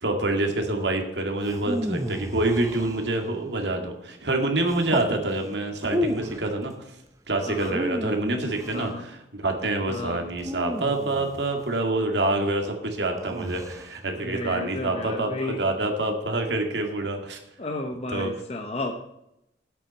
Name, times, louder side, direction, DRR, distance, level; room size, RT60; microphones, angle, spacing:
voice 1, 0.0-6.7 7.3-17.4 18.1-18.3, right 2 dB, 80° right, 3 dB, 2.0 m, -26 dB
sound 1, 1.4-3.4 4.7-5.2 5.8-6.5 7.5-8.9 10.4-11.6 13.2-13.9, equal, 20° right, 0.6 m, -32 dB
voice 2, 7.5-7.8 8.7-9.0 9.9-10.2 14.2-15.6 17.6-18.9, left 2 dB, 35° left, 3 dB, 0.9 m, -33 dB
8.3 x 7.2 x 8.1 m, 0.82 s
head